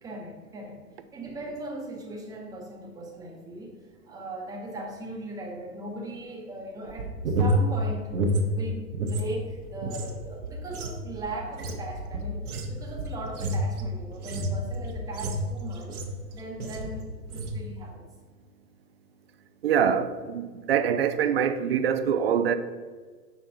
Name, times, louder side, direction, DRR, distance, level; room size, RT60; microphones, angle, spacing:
voice 1, 0.0-3.8 4.0-8.1 8.5-16.0 16.3-18.0, right 1 dB, 10° right, 0.9 m, -39 dB
sound 1, 6.9-9.2 9.5-16.2 16.6-17.0 17.2-17.6, equal, 65° right, 1.2 m, -29 dB
voice 2, 19.6-22.5, right 8 dB, 45° right, 0.4 m, -24 dB
5.4 x 4.6 x 5.7 m
hypercardioid pair, 125°, 47 cm